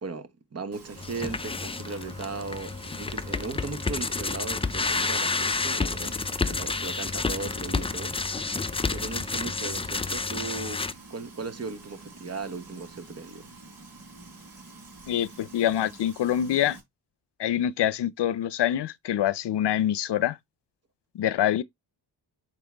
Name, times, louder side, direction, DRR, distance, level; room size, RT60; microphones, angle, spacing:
voice 1, 0.0-8.2 8.9-13.5, right 4 dB, 35° right, 1.0 m, -37 dB
Frying (food), 0.7-16.8, right 3 dB, 55° right, 3.7 m, -48 dB
sound 1, 1.0-10.9, left 4 dB, 15° left, 0.4 m, -30 dB
voice 2, 15.1-16.8 17.4-20.4 21.1-21.6, left 11 dB, 70° left, 0.7 m, -25 dB
7.2 x 4.6 x 3.3 m
wide cardioid pair, 115°, 42 cm